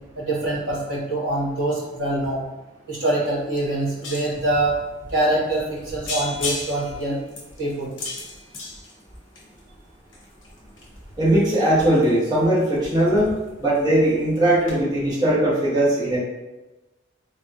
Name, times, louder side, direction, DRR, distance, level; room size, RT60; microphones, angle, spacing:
voice 1, 0.1-2.4 2.9-4.8 5.1-7.2 7.6-7.9, right 1 dB, 60° right, -6 dB, 1.4 m, -24 dB
sound 1, 3.3-3.4 3.5-4.5 5.1-5.2 5.6-5.8 6.1-9.6 10.1-13.5 13.8-14.1 14.4-14.5 14.7-14.8, left 3 dB, 75° left, 0.9 m, -34 dB
voice 2, 11.2-13.3 13.6-16.2, right 1 dB, 20° right, -8 dB, 0.9 m, -19 dB
3.3 x 2.2 x 2.8 m, 1.1 s
head